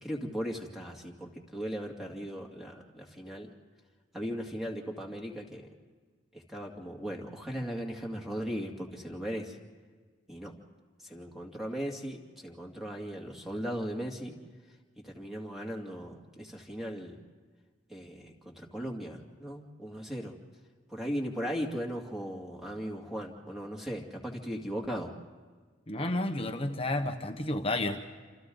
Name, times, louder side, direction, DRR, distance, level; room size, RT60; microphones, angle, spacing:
voice 1, 0.0-3.5 4.1-5.7 6.3-9.6 10.3-10.5 11.0-14.3 15.0-17.2 17.9-20.4 20.9-25.1, equal, ahead, 0 dB, 2.4 m, -37 dB
voice 2, 25.9-28.0, left 1 dB, 30° left, 5 dB, 1.2 m, -31 dB
28.0 x 27.5 x 4.0 m, 1.5 s
head